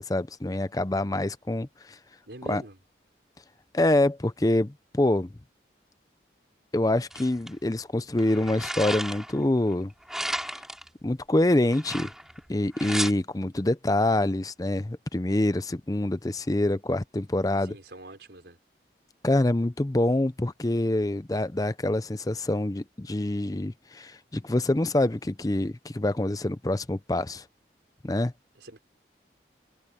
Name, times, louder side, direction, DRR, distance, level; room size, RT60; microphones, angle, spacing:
voice 1, 0.0-2.0 2.5-2.6 3.7-5.3 6.7-9.9 11.0-12.1 12.5-17.7 19.2-27.4 28.0-28.3, left 1 dB, 20° left, 0.5 m, -26 dB
voice 2, 2.3-2.8 17.6-18.6 28.5-28.8, right 1 dB, 70° right, 4.5 m, -44 dB
sound 1, 7.1-7.5 8.2-9.4 10.1-10.9 11.7-12.4 12.7-13.1, right 1 dB, 5° right, 3.2 m, -33 dB
head